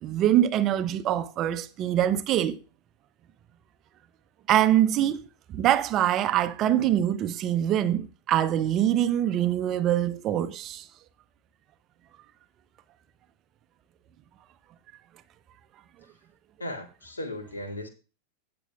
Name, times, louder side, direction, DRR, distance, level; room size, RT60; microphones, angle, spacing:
voice 1, 0.0-2.6 4.5-5.2 5.5-10.8, right 11 dB, 35° right, 0.7 m, -24 dB
voice 2, 16.6-17.9, left 1 dB, 75° left, 1.9 m, -36 dB
17.5 x 6.9 x 2.4 m
figure-of-eight pair, 90°, 0 cm